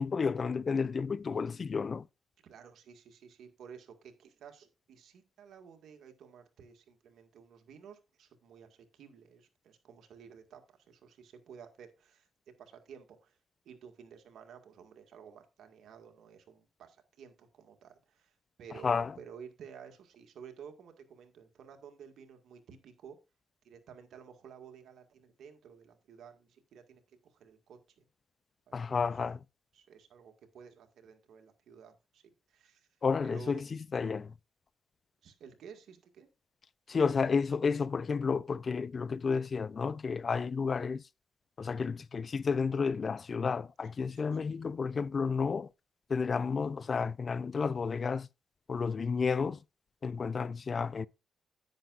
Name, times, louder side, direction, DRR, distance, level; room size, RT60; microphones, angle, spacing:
voice 1, 0.0-2.1 18.8-19.1 28.7-29.4 33.0-34.3 36.9-41.0 41.6-45.7 46.1-48.3 48.7-49.6 50.0-51.1, left 5 dB, 45° left, 0.4 m, -31 dB
voice 2, 2.4-12.3 12.6-13.4 13.6-23.2 23.6-28.1 28.7-29.1 29.7-32.9 33.2-33.6 35.2-36.3 44.0-44.4 50.1-50.4, right 7 dB, 80° right, 1.8 m, -53 dB
10.5 x 9.3 x 2.5 m
cardioid pair, 85°, 0 cm